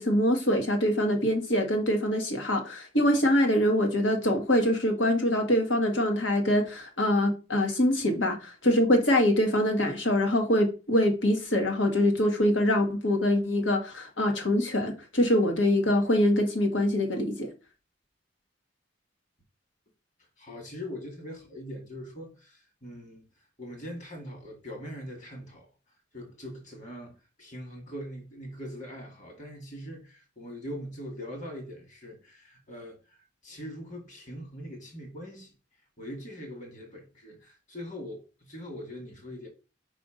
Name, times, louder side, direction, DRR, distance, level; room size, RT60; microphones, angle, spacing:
voice 1, 0.0-17.5, left 1 dB, 80° left, 1.7 m, -24 dB
voice 2, 20.4-23.2 23.6-25.7 26.1-35.5 36.0-39.5, equal, 40° left, 2.2 m, -42 dB
5.2 x 4.9 x 5.1 m
head